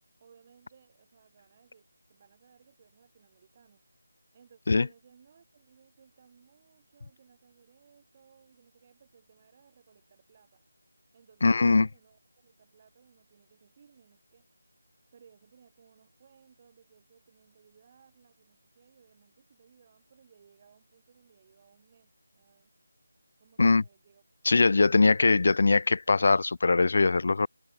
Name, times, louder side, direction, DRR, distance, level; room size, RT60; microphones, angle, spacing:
voice 1, 0.2-3.8 4.3-10.6 11.1-14.4 15.1-22.7 23.4-25.1, right 7 dB, 30° right, 4.6 m, -62 dB
voice 2, 11.4-11.9 23.6-23.8 24.4-27.5, left 3 dB, 50° left, 0.3 m, -21 dB
figure-of-eight pair, 160°, 0 cm